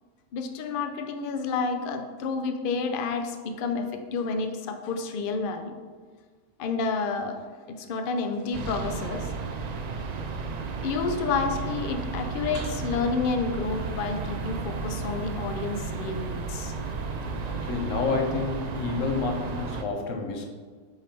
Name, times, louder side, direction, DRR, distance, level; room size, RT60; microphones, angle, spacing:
voice 1, 0.3-3.8 4.1-5.7 6.6-7.4 7.7-9.3 10.8-16.7, left 4 dB, 55° left, 5 dB, 0.6 m, -30 dB
sound 1, 8.5-19.8, right 4 dB, 65° right, 0.4 m, -33 dB
voice 2, 17.2-20.5, left 4 dB, 85° left, 3 dB, 1.2 m, -29 dB
5.2 x 4.7 x 4.4 m, 1.5 s
omnidirectional pair, 1.3 m